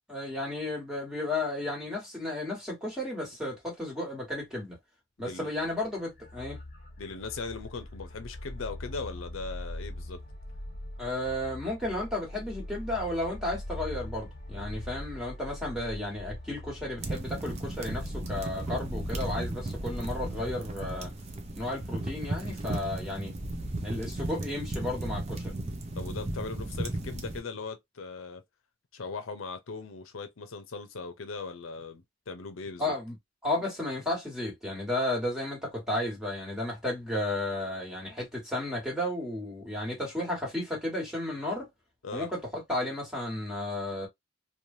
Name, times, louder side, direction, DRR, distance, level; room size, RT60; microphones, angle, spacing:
voice 1, 0.1-4.8 5.2-6.6 11.0-21.1 21.6-23.3 23.8-25.5 32.8-33.1 33.4-41.7 42.1-44.1, left 1 dB, 5° right, 1.4 m, -33 dB
voice 2, 5.2-5.5 7.0-10.2 25.9-28.4 28.9-32.9 42.0-42.3, left 4 dB, 80° left, 0.6 m, -39 dB
sound 1, 5.5-21.1, left 1 dB, 45° left, 0.8 m, -41 dB
sound 2, 17.0-27.4, right 2 dB, 30° right, 0.5 m, -35 dB
3.2 x 2.2 x 2.7 m
head